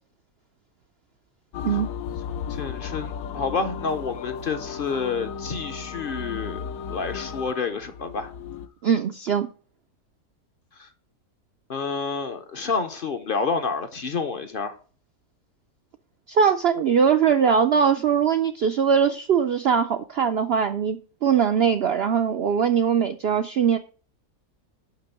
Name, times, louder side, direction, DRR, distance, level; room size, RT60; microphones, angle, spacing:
sound 1, 1.5-8.7, left 7 dB, 70° left, 1.0 m, -34 dB
voice 1, 2.5-6.6 6.9-8.3 10.8-10.9 11.7-14.8, left 5 dB, 45° left, 0.7 m, -29 dB
voice 2, 8.8-9.5 16.3-23.8, right 7 dB, 70° right, 0.6 m, -21 dB
6.0 x 5.9 x 6.9 m
omnidirectional pair, 1.6 m